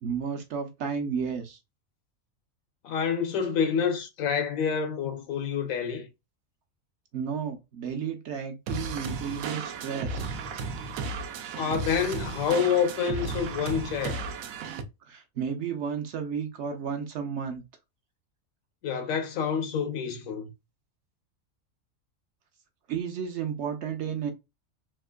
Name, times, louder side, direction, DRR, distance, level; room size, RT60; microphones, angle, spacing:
voice 1, 0.0-1.6 7.1-10.3 15.1-17.6 22.9-24.3, right 7 dB, 65° right, 0.8 m, -32 dB
voice 2, 2.8-6.1 11.6-14.3 18.8-20.5, left 7 dB, 85° left, 1.1 m, -28 dB
sound 1, 8.7-14.8, right 4 dB, 90° right, 1.0 m, -34 dB
3.6 x 2.4 x 2.2 m
omnidirectional pair, 1.4 m